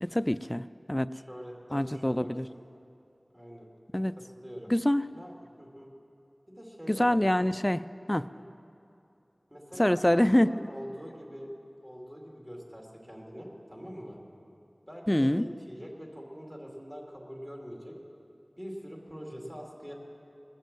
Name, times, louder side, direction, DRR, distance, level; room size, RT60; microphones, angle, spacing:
voice 1, 0.0-1.1 1.7-2.5 3.9-4.1 4.7-5.0 6.9-7.8 8.1-8.3 9.8-10.7 15.1-15.5, left 1 dB, 20° left, 13 dB, 0.3 m, -25 dB
voice 2, 1.1-2.6 3.3-3.7 4.3-4.7 5.1-5.9 6.5-7.4 8.3-8.4 9.5-11.5 11.8-14.2 14.9-18.0 18.6-19.9, equal, 25° right, -1 dB, 2.7 m, -44 dB
20.0 x 7.3 x 7.6 m, 2.7 s
wide cardioid pair, 40°, 0 cm